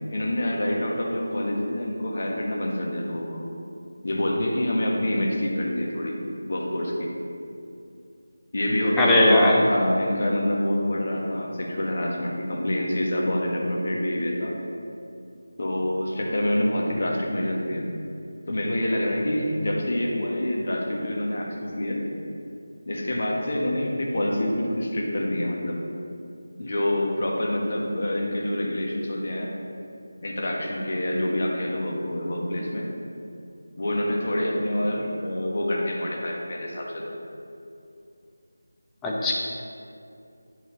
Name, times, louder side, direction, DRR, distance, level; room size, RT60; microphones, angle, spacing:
voice 1, 0.1-3.4 4.0-6.2 6.5-7.1 8.5-14.5 15.6-17.9 18.5-22.0 22.9-25.8 26.6-29.5 30.2-32.9 33.8-37.1, left 1 dB, 50° left, -2 dB, 1.5 m, -26 dB
voice 2, 9.0-9.6 39.0-39.3, left 1 dB, 5° left, -4 dB, 0.7 m, -18 dB
10.0 x 4.9 x 4.0 m, 2.6 s
figure-of-eight pair, 165°, 0 cm